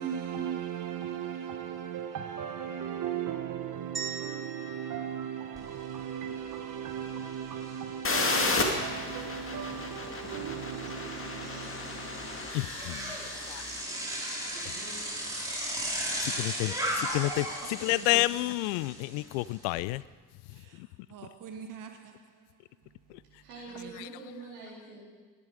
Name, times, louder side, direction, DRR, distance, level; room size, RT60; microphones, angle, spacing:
voice 1, 0.0-12.5 17.6-18.1 20.6-20.8 21.1-22.2 23.8-23.9, right 9 dB, 45° right, 1.3 m, -37 dB
sound 1, 3.9-6.2, right 5 dB, 25° right, 3.3 m, -42 dB
Bicycle, 5.6-5.7 6.0-19.8, right 1 dB, 10° right, 4.5 m, -37 dB
sound 2, 8.0-13.7, left 3 dB, 30° left, 2.3 m, -33 dB
voice 2, 12.5-13.1 13.5-13.7 16.2-20.0 20.8-20.9 24.0-24.1, left 20 dB, 65° left, 0.5 m, -30 dB
voice 3, 13.2-14.1 14.4-15.0 23.4-25.0, right 3 dB, 75° right, 4.1 m, -47 dB
17.5 x 11.0 x 4.9 m
figure-of-eight pair, 50°, 46 cm